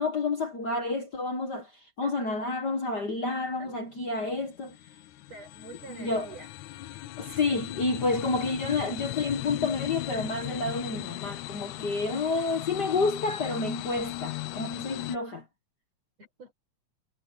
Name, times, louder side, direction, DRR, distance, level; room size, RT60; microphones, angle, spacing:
voice 1, 0.0-1.6 2.0-4.7 6.0-6.3 7.2-15.4, left 3 dB, 40° left, 1.8 m, -29 dB
voice 2, 2.0-2.4 3.6-3.8 5.3-6.5 7.2-7.4 11.8-12.5 16.2-16.5, right 3 dB, 60° right, 6.2 m, -48 dB
sound 1, 3.6-15.2, left 16 dB, 85° left, 2.2 m, -38 dB
omnidirectional pair, 3.3 m